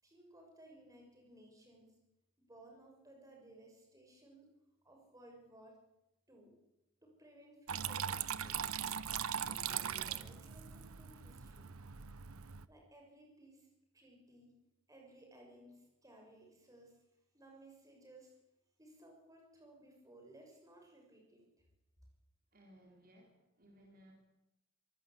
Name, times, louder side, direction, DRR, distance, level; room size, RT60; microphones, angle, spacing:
voice 1, 0.0-1.9 2.4-4.4 4.8-5.8 6.3-6.5 7.0-8.8 9.4-11.8 12.7-13.7 13.9-14.5 14.9-17.0 17.3-18.4 18.8-21.4, right 1 dB, 15° right, 1 dB, 6.6 m, -59 dB
Water tap faucet / Trickle dribble, 7.7-12.7, right 8 dB, 85° right, 0.9 m, -40 dB
voice 2, 22.5-24.1, equal, 45° right, 1 dB, 4.3 m, -62 dB
25.0 x 19.5 x 8.4 m, 0.90 s
head